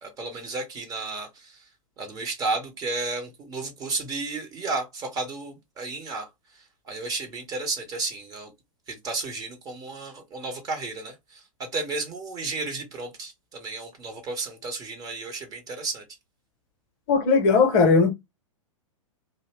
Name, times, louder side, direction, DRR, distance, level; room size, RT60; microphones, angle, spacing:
voice 1, 0.0-1.6 2.0-6.3 6.9-8.5 8.9-16.0, right 3 dB, 20° right, 0.7 m, -33 dB
voice 2, 17.1-18.1, left 4 dB, 35° left, 0.7 m, -18 dB
2.7 x 2.0 x 3.0 m
figure-of-eight pair, 105°, 17 cm